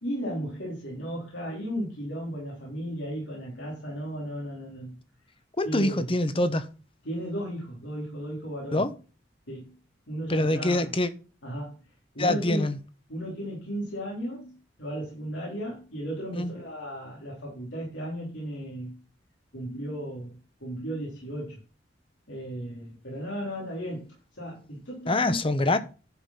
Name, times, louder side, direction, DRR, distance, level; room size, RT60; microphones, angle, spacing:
voice 1, 0.0-5.0 5.6-6.1 7.0-8.9 9.5-9.7 10.1-10.9 11.4-11.7 12.1-12.7 13.1-18.9 19.5-20.3 20.6-21.6 22.3-25.4, equal, 85° left, 3.9 m, -35 dB
voice 2, 5.6-6.7 8.7-8.9 10.3-11.1 12.2-12.8 16.3-16.5 25.1-25.8, left 2 dB, 30° left, 0.9 m, -25 dB
11.0 x 5.5 x 5.8 m
head